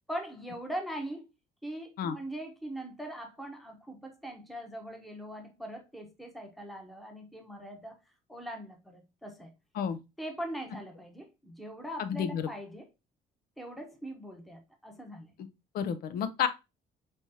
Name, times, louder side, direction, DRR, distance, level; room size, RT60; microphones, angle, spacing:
voice 1, 0.1-1.3 1.6-8.0 8.3-9.5 10.2-12.9 13.6-15.3, right 1 dB, ahead, 0.9 m, -41 dB
voice 2, 12.0-12.5 15.7-16.5, left 8 dB, 65° left, 0.6 m, -30 dB
5.2 x 3.1 x 2.6 m
cardioid pair, 110°, 17 cm